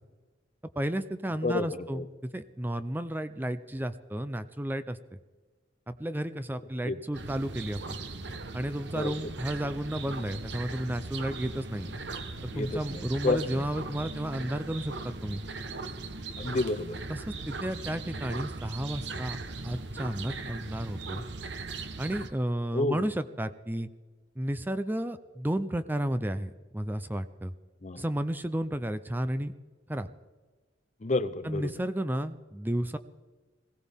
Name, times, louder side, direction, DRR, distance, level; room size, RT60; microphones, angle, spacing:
voice 1, 0.8-5.0 5.9-8.0 8.5-12.0 12.6-15.4 17.1-19.4 19.6-21.2 22.0-23.9 24.4-27.5 28.0-29.5 29.9-30.1 31.4-33.0, right 1 dB, 10° right, 11 dB, 0.5 m, -32 dB
voice 2, 1.4-2.1 6.8-7.0 8.9-9.1 12.5-13.6 16.4-17.0 22.7-23.0 27.8-28.0 31.0-31.7, left 2 dB, 40° left, 13 dB, 0.6 m, -30 dB
sound 1, 7.1-22.3, right 3 dB, 65° right, 1.1 m, -39 dB
21.0 x 16.5 x 3.6 m, 1.3 s
head